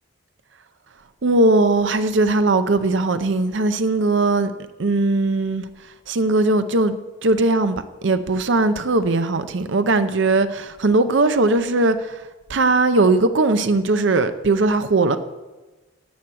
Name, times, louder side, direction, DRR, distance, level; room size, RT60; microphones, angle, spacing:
voice 1, 1.2-4.5 4.8-5.7 6.1-15.2, right 2 dB, 65° right, 0.6 m, -19 dB
11.5 x 7.7 x 8.6 m
head